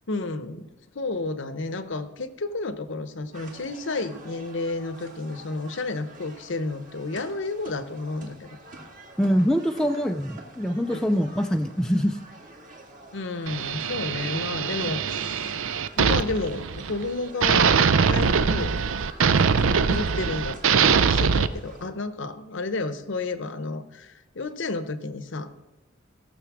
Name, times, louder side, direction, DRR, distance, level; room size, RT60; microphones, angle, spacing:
voice 1, 0.1-0.7 0.9-8.5 10.9-11.0 13.1-15.7 16.0-17.7 18.1-18.7 19.9-25.5, left 3 dB, 65° left, 12 dB, 0.9 m, -31 dB
sound 1, 3.3-21.9, right 2 dB, 40° right, 2.1 m, -48 dB
voice 2, 9.2-12.2, equal, 5° left, 4 dB, 0.4 m, -24 dB
sound 2, 13.5-17.1 17.4-21.5, right 6 dB, 80° right, 0.5 m, -22 dB
16.0 x 6.8 x 6.1 m, 1.1 s
head